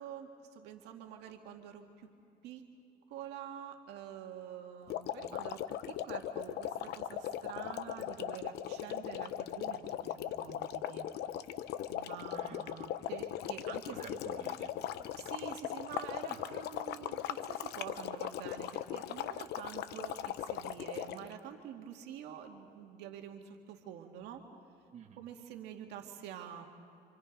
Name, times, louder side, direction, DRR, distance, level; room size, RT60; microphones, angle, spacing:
voice 1, 0.0-2.1 2.4-2.6 3.1-11.1 11.9-14.0 15.2-24.4 25.2-26.7, right 9 dB, 85° right, 3 dB, 2.1 m, -47 dB
sound 1, 4.9-21.3, left 11 dB, 80° left, 0.9 m, -39 dB
voice 2, 12.2-12.6 13.9-15.1 16.2-16.4 24.9-25.3, right 6 dB, 45° right, 1 dB, 2.4 m, -52 dB
28.5 x 27.0 x 5.4 m, 2.7 s
cardioid pair, 110°, 17 cm